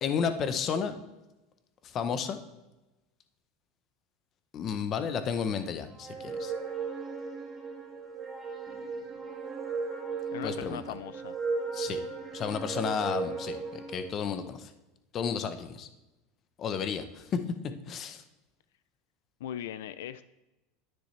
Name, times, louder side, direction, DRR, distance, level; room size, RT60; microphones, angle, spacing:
voice 1, 0.0-1.0 1.8-2.4 4.5-6.5 10.4-10.8 11.7-12.0 12.3-14.7 15.1-15.9 16.6-17.2 17.9-18.2, left 7 dB, 35° left, 10 dB, 0.8 m, -32 dB
sound 1, 6.0-14.1, right 4 dB, 5° right, 1.9 m, -36 dB
voice 2, 10.3-11.4 19.4-20.2, left 10 dB, 90° left, 15 dB, 0.4 m, -39 dB
10.5 x 9.4 x 3.2 m, 1.0 s
supercardioid pair, 145°, 0 cm